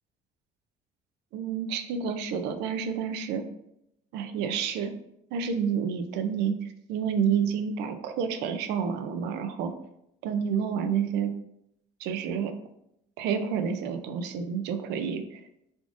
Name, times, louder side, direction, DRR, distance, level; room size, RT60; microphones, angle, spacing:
voice 1, 1.3-3.4 4.1-4.9 5.3-6.5 6.9-9.7 10.2-11.3 12.0-12.5 13.2-15.4, right 7 dB, 90° right, 8 dB, 0.4 m, -29 dB
3.7 x 3.5 x 2.5 m, 0.79 s
cardioid pair, 110°, 17 cm